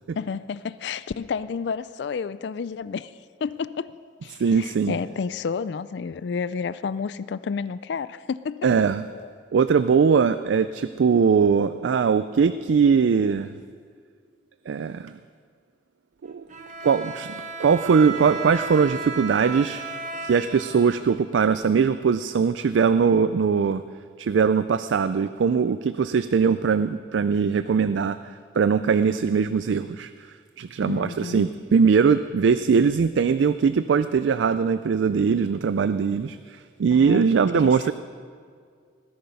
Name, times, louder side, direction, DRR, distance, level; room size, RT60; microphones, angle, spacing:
voice 1, 0.2-3.1 3.4-3.9 4.2-8.7 9.1-9.3 30.8-31.5 36.9-37.3 37.5-37.9, left 5 dB, 65° left, 16 dB, 0.4 m, -31 dB
voice 2, 4.4-5.0 8.6-9.0 9.5-13.5 14.7-15.1 16.2-16.4 16.8-19.8 20.2-23.8 24.2-28.2 28.5-30.1 30.6-37.9, right 6 dB, 75° right, 13 dB, 0.4 m, -21 dB
Bowed string instrument, 16.5-21.5, right 4 dB, 40° right, 1.2 m, -34 dB
19.0 x 10.5 x 5.4 m, 2.1 s
head